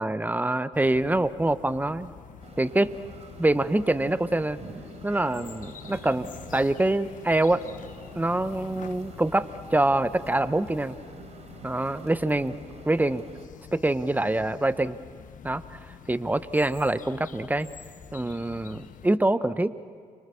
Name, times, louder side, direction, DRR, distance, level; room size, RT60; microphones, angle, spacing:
voice 1, 0.0-2.1 2.6-2.9 3.4-4.6 5.0-7.6 8.1-11.0 11.6-12.6 12.8-13.2 13.7-15.0 15.4-15.8 16.1-17.7 18.1-19.8, right 2 dB, 10° right, 14 dB, 1.2 m, -25 dB
sound 1, 0.7-19.1, left 8 dB, 55° left, 1.4 m, -46 dB
sound 2, 2.4-13.5, right 4 dB, 45° right, 4.2 m, -48 dB
30.0 x 24.0 x 7.2 m, 2.1 s
hypercardioid pair, 50°, 16 cm